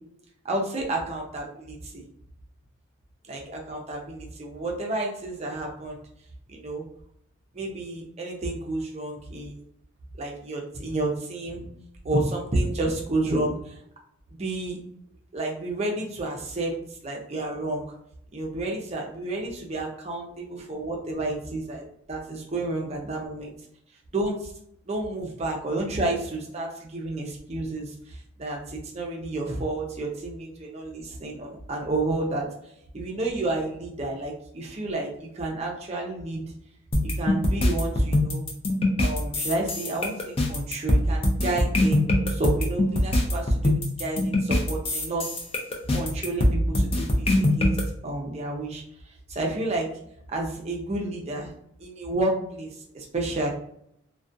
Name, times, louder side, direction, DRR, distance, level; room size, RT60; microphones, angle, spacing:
voice 1, 0.4-2.0 3.2-6.0 6.5-6.8 7.5-9.6 10.2-11.7 12.0-13.8 14.4-14.8 15.3-17.8 18.3-23.5 24.1-24.5 24.9-32.5 32.9-36.4 37.1-38.4 39.0-45.4 45.9-47.8 48.0-49.9 50.3-51.5 51.8-53.5, right 2 dB, 30° right, -1 dB, 0.5 m, -30 dB
sound 1, 36.9-47.8, left 1 dB, 25° left, 0.4 m, -23 dB
2.3 x 2.2 x 2.5 m, 0.73 s
head